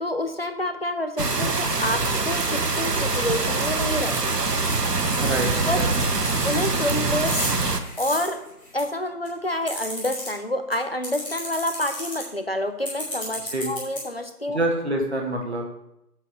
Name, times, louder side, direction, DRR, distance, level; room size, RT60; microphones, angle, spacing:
voice 1, 0.0-4.4 5.6-5.8 6.4-7.4 8.0-8.4 8.7-14.6, left 1 dB, 40° left, 8 dB, 0.7 m, -28 dB
sound 1, 1.2-7.8, right 3 dB, 85° right, 1.2 m, -24 dB
sound 2, 4.1-4.2 4.6-4.7 5.1-5.4 5.9-6.6 7.1-8.8 9.2-10.3 10.7-10.8 11.0-12.2 12.8-14.0, left 1 dB, 5° left, 2.0 m, -32 dB
voice 2, 5.2-5.9 13.5-13.7 14.5-15.6, right 1 dB, 45° right, 1 dB, 1.7 m, -26 dB
8.0 x 5.6 x 6.8 m, 0.83 s
figure-of-eight pair, 165°, 47 cm